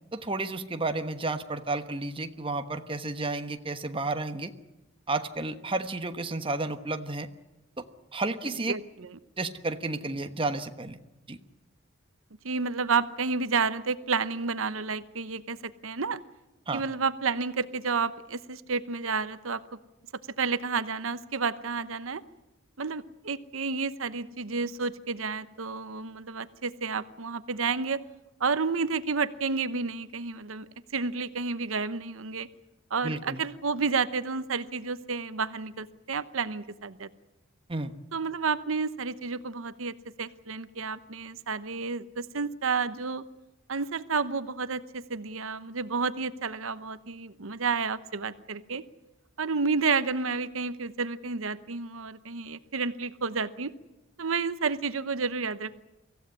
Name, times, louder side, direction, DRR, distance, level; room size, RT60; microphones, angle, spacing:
voice 1, 0.1-4.5 5.1-7.3 7.8-7.9 8.1-8.8 9.4-11.0 11.3-11.4 16.7-16.8 33.0-33.4 37.7-37.9, right 2 dB, 25° right, 8 dB, 1.2 m, -32 dB
voice 2, 8.7-9.2 12.4-16.2 16.7-19.6 20.4-22.2 22.8-28.0 28.4-32.5 32.9-37.1 38.1-43.2 43.7-48.8 49.4-53.7 54.2-55.8, right 5 dB, 85° right, 13 dB, 1.0 m, -30 dB
24.5 x 15.5 x 9.7 m, 1.0 s
head